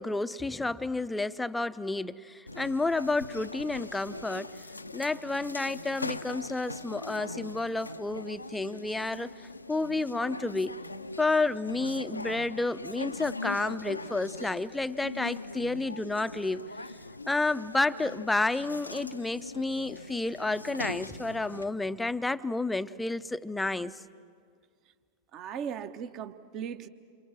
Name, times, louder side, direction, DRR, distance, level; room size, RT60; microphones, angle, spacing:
voice 1, 0.0-4.5 4.9-9.3 9.7-10.8 11.2-16.7 17.3-23.9, left 2 dB, 5° left, 14 dB, 0.6 m, -30 dB
sound 1, 2.5-21.6, left 2 dB, 85° left, 0.6 m, -41 dB
voice 2, 25.3-26.9, right 8 dB, 35° right, 12 dB, 1.1 m, -37 dB
28.5 x 28.0 x 6.4 m, 2.1 s
figure-of-eight pair, 90°, 0 cm